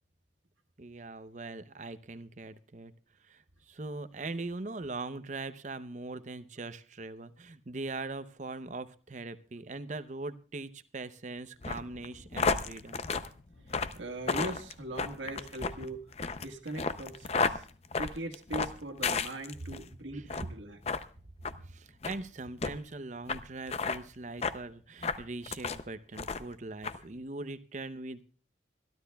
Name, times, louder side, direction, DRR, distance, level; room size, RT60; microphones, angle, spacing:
voice 1, 0.8-2.9 3.2-13.0 20.1-20.3 21.6-28.2, right 3 dB, 40° right, 12 dB, 0.7 m, -41 dB
sound 1, 11.6-19.8 20.2-20.5 20.8-21.0 21.4-21.6 22.0-22.2 22.6-22.7 23.3-23.4 23.7-24.0 24.4-24.6 25.0-25.8 26.2-26.5 26.8-27.0, left 4 dB, 35° left, 0.5 m, -32 dB
voice 2, 13.8-16.0 16.4-17.7 18.0-20.8, right 1 dB, 85° right, 5 dB, 1.6 m, -40 dB
26.0 x 12.0 x 2.3 m, 0.39 s
head